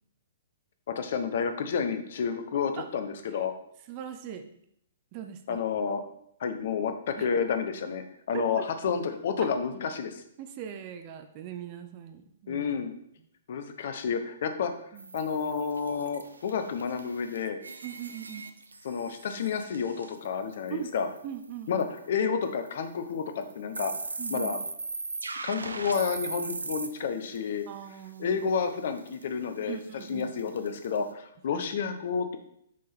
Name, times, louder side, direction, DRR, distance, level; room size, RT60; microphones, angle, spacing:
voice 1, 0.9-3.5 5.5-6.0 6.4-10.2 12.5-12.9 13.5-14.7 15.1-17.6 18.8-21.1 21.7-23.9 24.3-24.6 25.4-27.7 28.2-32.4, left 6 dB, 55° left, 8 dB, 0.8 m, -30 dB
voice 2, 3.9-4.5 5.1-5.7 7.2-7.3 8.3-8.5 9.4-9.5 10.4-12.7 14.9-15.1 17.8-18.4 20.7-20.9 21.2-21.9 24.2-24.5 27.7-28.4 29.7-30.7 31.5-31.7, right 9 dB, 35° right, 7 dB, 0.5 m, -40 dB
sound 1, 15.0-21.2 21.4-21.5 21.8-22.0 22.7-22.8 23.4-27.4 29.0-29.2 30.0-31.0, right 3 dB, 85° right, 0.5 m, -39 dB
6.2 x 3.7 x 4.4 m, 0.71 s
figure-of-eight pair, 120°, 0 cm